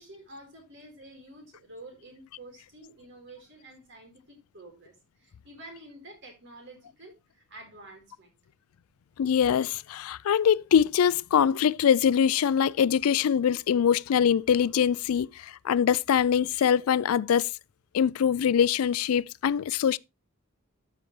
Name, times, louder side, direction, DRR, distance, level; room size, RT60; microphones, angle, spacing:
voice 1, 0.0-8.4, right 1 dB, 55° right, 4.2 m, -49 dB
voice 2, 9.2-17.5 17.9-20.0, left 8 dB, 80° left, 0.4 m, -23 dB
13.0 x 5.8 x 3.2 m
head